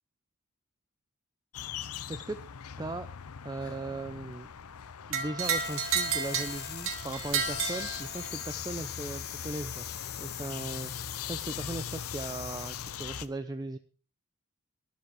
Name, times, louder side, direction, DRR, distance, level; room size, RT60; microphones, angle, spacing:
sound 1, 1.5-13.3, left 8 dB, 80° left, 0.7 m, -41 dB
voice 1, 2.8-3.1 3.4-4.5 5.1-9.9 10.2-13.8, right 2 dB, 20° right, 10 dB, 0.5 m, -38 dB
sound 2, 5.1-8.5, right 6 dB, 65° right, 2.3 m, -32 dB
sound 3, 5.4-13.3, left 10 dB, 45° left, 1.4 m, -42 dB
12.5 x 11.5 x 4.8 m, 0.38 s
head